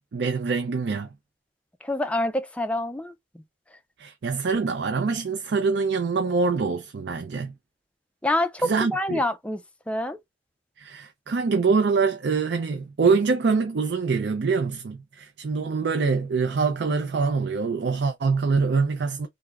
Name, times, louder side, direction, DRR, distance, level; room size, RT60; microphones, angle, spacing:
voice 1, 0.1-1.1 4.0-7.5 8.6-9.2 10.8-19.3, right 4 dB, 65° right, 0.4 m, -24 dB
voice 2, 1.8-3.4 8.2-9.6 9.9-10.2, left 1 dB, 5° left, 0.4 m, -27 dB
3.4 x 2.1 x 3.4 m
head